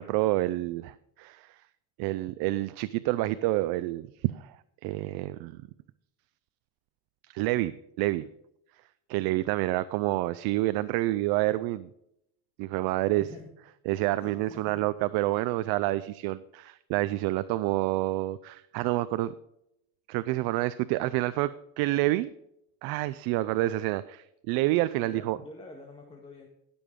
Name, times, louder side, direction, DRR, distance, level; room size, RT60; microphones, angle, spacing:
voice 1, 0.0-1.6 2.0-5.6 7.3-8.3 9.1-11.9 12.6-13.2 13.9-19.3 20.1-21.5 21.8-22.3 22.8-25.4, right 17 dB, 80° right, 14 dB, 0.6 m, -28 dB
voice 2, 13.2-13.5 14.2-14.8 25.0-26.5, left 2 dB, 15° left, 1 dB, 1.9 m, -46 dB
16.5 x 7.0 x 3.7 m, 0.79 s
cardioid pair, 110°, 37 cm